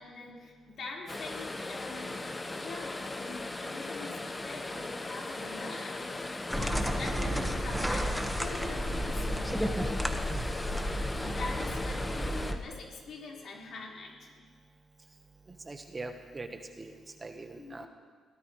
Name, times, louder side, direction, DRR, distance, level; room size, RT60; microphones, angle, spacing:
voice 1, 0.0-8.1 8.4-9.5 11.2-14.1 15.2-15.3 17.6-17.9, left 3 dB, 60° left, -3 dB, 4.7 m, -44 dB
sound 1, 1.1-12.5, left 2 dB, 20° left, 1.1 m, -38 dB
sound 2, 6.5-12.6, equal, ahead, 1.4 m, -32 dB
voice 2, 15.5-17.9, right 3 dB, 25° right, 6 dB, 1.3 m, -43 dB
23.5 x 17.0 x 3.3 m, 1.5 s
cardioid pair, 90°, 0 cm